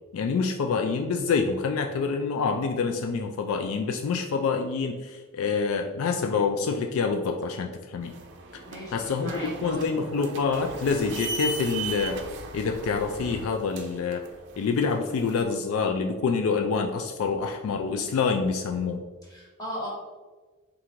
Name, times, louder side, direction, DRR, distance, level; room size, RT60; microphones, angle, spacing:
voice 1, 0.1-8.1 8.9-9.3 9.6-12.2 12.5-14.2 14.6-19.0, left 5 dB, 70° left, 4 dB, 0.3 m, -26 dB
sound 1, 8.0-15.4, right 3 dB, 55° right, 0.5 m, -38 dB
voice 2, 8.6-10.1 19.2-19.9, equal, 20° left, -5 dB, 1.2 m, -37 dB
4.4 x 2.5 x 3.7 m, 1.3 s
head